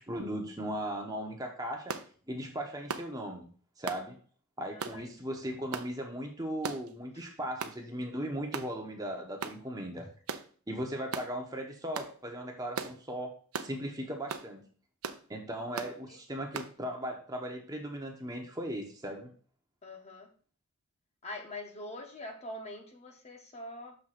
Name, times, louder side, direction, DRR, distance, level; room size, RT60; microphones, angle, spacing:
voice 1, 0.0-2.0 2.3-3.5 3.8-4.2 4.6-10.1 10.7-14.7 15.3-19.3, equal, 15° right, 2 dB, 0.9 m, -37 dB
sound 1, 1.9-2.1 2.9-3.1 3.9-4.1 4.8-5.0 5.7-5.9 6.6-6.9 7.6-7.8 8.5-8.7 9.4-9.6 10.3-10.5 11.1-11.3 11.9-12.1 12.8-13.0 13.5-13.7 14.3-14.5 15.0-15.2 15.8-15.9 16.5-16.7, right 5 dB, 75° right, 0.7 m, -37 dB
voice 2, 4.7-5.0 7.1-7.2 16.1-16.2 19.8-20.3 21.2-24.0, left 1 dB, 30° left, 3 dB, 1.0 m, -44 dB
6.4 x 3.6 x 5.7 m, 0.42 s
head